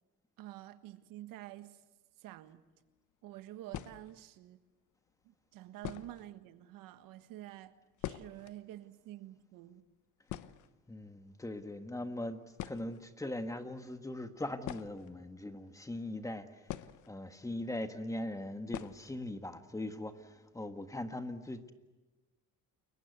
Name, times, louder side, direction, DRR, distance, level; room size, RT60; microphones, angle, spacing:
voice 1, 0.4-1.8 2.2-2.6 3.2-4.6 5.2-7.7 8.0-9.9, right 14 dB, 80° right, 1.5 m, -49 dB
sound 1, 2.7-2.8 3.7-4.4 5.2-5.3 5.8-6.3 6.6-6.7 7.0-7.1 7.5-8.6 8.9-9.0 9.2-9.5 9.9-10.0 10.3-11.2 12.1-12.2 12.5-13.1 14.6-15.7 16.7-17.5 17.8-17.9 18.7-19.2 19.5-19.6 19.9-20.0 20.5-20.8, left 13 dB, 65° left, 1.0 m, -44 dB
voice 2, 10.9-16.6 17.1-21.7, left 1 dB, 10° left, 1.6 m, -40 dB
29.5 x 22.5 x 8.2 m
cardioid pair, 125°, 33 cm